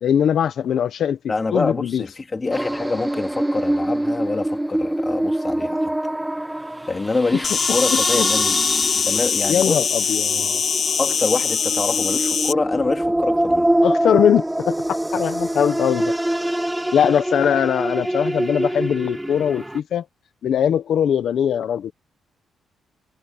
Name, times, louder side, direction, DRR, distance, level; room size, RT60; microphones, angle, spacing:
voice 1, 0.0-2.0 7.9-8.3 9.5-10.6 13.8-16.1 16.9-20.1 20.4-21.9, left 9 dB, 65° left, 1.3 m, -21 dB
voice 2, 1.3-5.9 6.9-8.6 9.1-9.8 11.0-13.7, left 3 dB, 25° left, 3.3 m, -25 dB
sound 1, 2.5-19.8, right 1 dB, 5° right, 0.6 m, -25 dB
Insect, 7.4-12.5, left 7 dB, 45° left, 0.3 m, -22 dB
cardioid pair, 120°, 0 cm